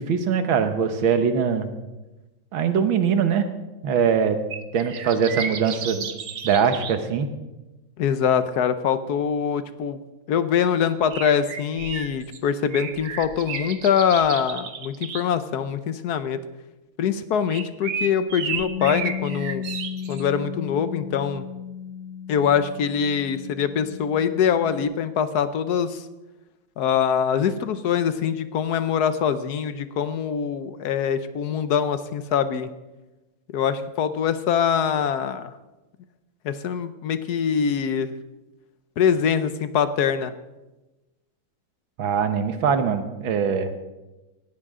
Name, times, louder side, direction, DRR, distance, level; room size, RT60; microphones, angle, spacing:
voice 1, 0.0-1.7 2.5-3.5 3.8-4.4 4.7-6.2 6.4-7.3 42.0-43.7, right 6 dB, 75° right, 8 dB, 2.0 m, -22 dB
sound 1, 4.5-7.0 11.1-12.4 12.7-15.2 17.5-20.3, right 6 dB, 55° right, 1.3 m, -33 dB
voice 2, 8.0-10.0 10.3-16.4 17.0-19.6 20.1-21.5 22.3-26.1 26.8-32.7 33.5-35.5 36.4-38.1 39.0-40.3, left 7 dB, 60° left, 12 dB, 1.2 m, -23 dB
Bass guitar, 18.6-24.8, left 7 dB, 20° right, 2.6 m, -35 dB
18.5 x 14.5 x 3.7 m, 1.1 s
omnidirectional pair, 2.2 m